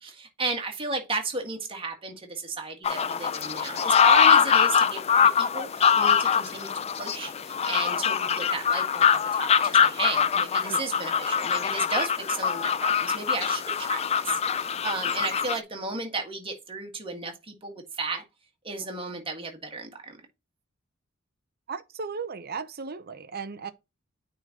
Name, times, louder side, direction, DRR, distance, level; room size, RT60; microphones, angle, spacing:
voice 1, 0.0-18.2 18.6-20.2, right 3 dB, 25° right, 1.7 m, -34 dB
sound 1, 2.8-15.6, left 7 dB, 30° left, 0.4 m, -23 dB
voice 2, 21.7-23.7, right 5 dB, 50° right, 0.7 m, -36 dB
9.2 x 3.9 x 2.9 m
head